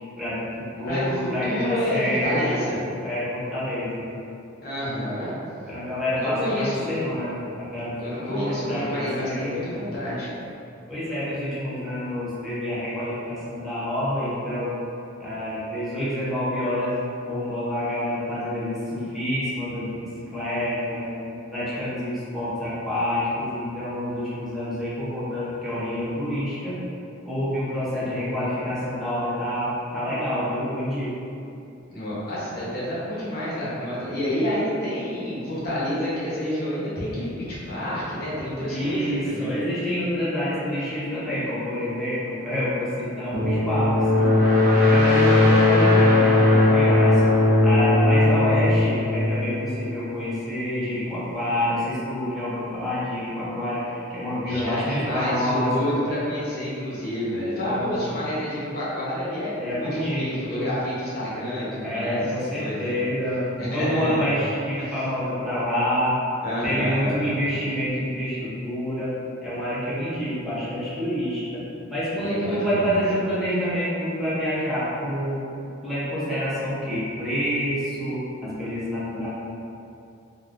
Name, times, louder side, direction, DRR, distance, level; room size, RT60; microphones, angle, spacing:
voice 1, 0.2-2.5 3.0-4.1 5.7-9.7 10.9-14.8 15.2-21.1 21.5-26.8 27.2-31.1 37.9-38.0 38.6-47.2 47.6-55.9 57.6-58.0 59.6-60.7 61.8-66.2 66.6-69.1 69.4-75.4 75.8-79.3, equal, ahead, -12 dB, 0.6 m, -27 dB
voice 2, 0.9-2.8 4.6-5.3 6.1-7.2 8.0-10.3 31.9-39.7 54.4-62.2 62.5-63.0 63.6-64.2 64.8-64.9 66.4-67.2 72.2-72.9, equal, 50° left, -9 dB, 0.9 m, -29 dB
sound 1, 43.3-50.0, left 2 dB, 50° right, 0.6 m, -18 dB
3.4 x 2.3 x 2.4 m, 2.7 s
head